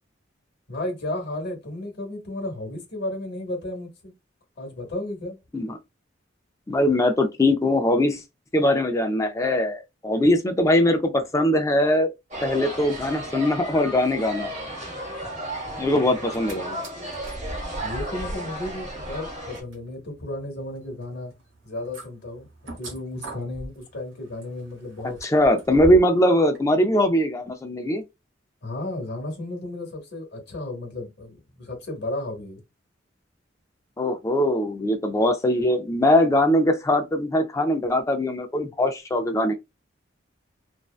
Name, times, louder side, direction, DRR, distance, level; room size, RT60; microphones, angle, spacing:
voice 1, 0.7-4.1 4.6-5.4 15.9-16.0 17.8-21.3 21.6-22.5 22.8-25.2 28.6-32.6, left 1 dB, 60° left, 0.9 m, -33 dB
voice 2, 6.7-8.2 8.5-12.1 12.4-14.5 15.8-16.8 25.2-28.0 34.0-39.5, left 1 dB, 15° left, 0.3 m, -21 dB
sound 1, 12.3-19.6, equal, 40° right, 0.9 m, -34 dB
sound 2, 16.3-16.5 16.8-26.2 26.5-26.6, right 1 dB, 75° right, 0.9 m, -39 dB
2.5 x 2.1 x 2.3 m
head